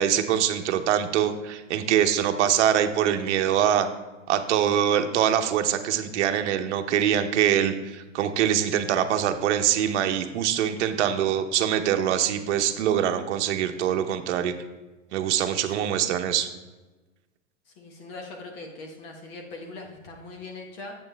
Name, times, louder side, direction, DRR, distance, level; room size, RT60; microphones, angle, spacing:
voice 1, 0.0-3.9 4.3-14.5 15.1-16.5, right 10 dB, 60° right, 7 dB, 0.8 m, -24 dB
voice 2, 10.8-11.1 15.8-16.2 17.7-21.0, left 3 dB, 45° left, 2 dB, 1.3 m, -42 dB
7.5 x 7.0 x 3.4 m, 1.2 s
hypercardioid pair, 135°, 40 cm